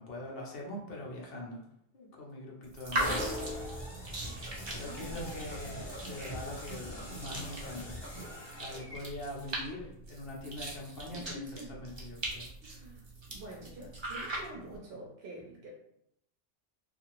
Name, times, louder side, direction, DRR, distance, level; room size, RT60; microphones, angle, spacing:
voice 1, 0.0-1.6 1.9-3.2 4.7-8.0 8.5-11.4 11.8-12.5, left 1 dB, 60° left, -2 dB, 0.8 m, -43 dB
sound 1, 2.6-14.8, right 1 dB, 30° right, 0.5 m, -41 dB
sound 2, 3.0-9.0, equal, 25° left, 0.8 m, -41 dB
voice 2, 3.9-5.4 11.1-11.8 12.6-15.7, right 1 dB, 60° right, -2 dB, 0.8 m, -48 dB
2.7 x 2.5 x 2.9 m, 0.76 s
omnidirectional pair, 1.2 m